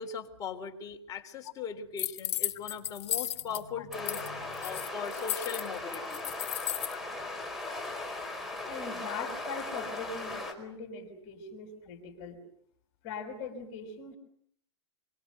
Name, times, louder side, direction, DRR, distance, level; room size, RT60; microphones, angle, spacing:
voice 1, 0.0-6.2, left 6 dB, 25° left, 4 dB, 3.4 m, -39 dB
sound 1, 2.0-3.6 3.9-4.3 4.5-6.9, left 12 dB, 65° left, 1.5 m, -34 dB
sound 2, 3.9-10.5, left 2 dB, ahead, 4.8 m, -38 dB
voice 2, 8.7-12.4 13.0-14.2, left 5 dB, 45° left, 4 dB, 5.8 m, -41 dB
27.0 x 24.0 x 8.0 m, 0.68 s
hypercardioid pair, 145°, 15 cm